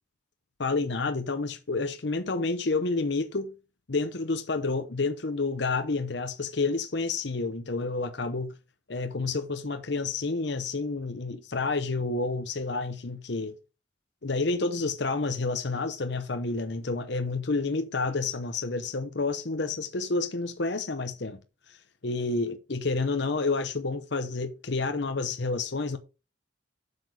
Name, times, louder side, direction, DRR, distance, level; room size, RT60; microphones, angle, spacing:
voice 1, 0.6-3.5 3.9-8.5 8.9-13.6 14.2-21.4 21.7-21.8 22.0-26.0, left 3 dB, 60° left, 0.9 m, -29 dB
8.0 x 6.9 x 4.9 m
head